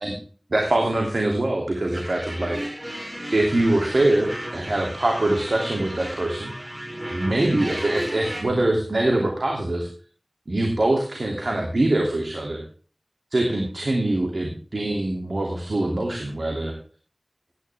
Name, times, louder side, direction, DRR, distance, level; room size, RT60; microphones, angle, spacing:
voice 1, 0.5-3.0 3.3-6.5 7.1-9.9 10.5-12.6 13.3-16.7, right 1 dB, 80° right, 1 dB, 2.8 m, -23 dB
sound 1, 1.9-8.4, right 1 dB, 30° right, 6.5 m, -34 dB
16.5 x 11.0 x 3.5 m, 0.41 s
wide cardioid pair, 40°, 0 cm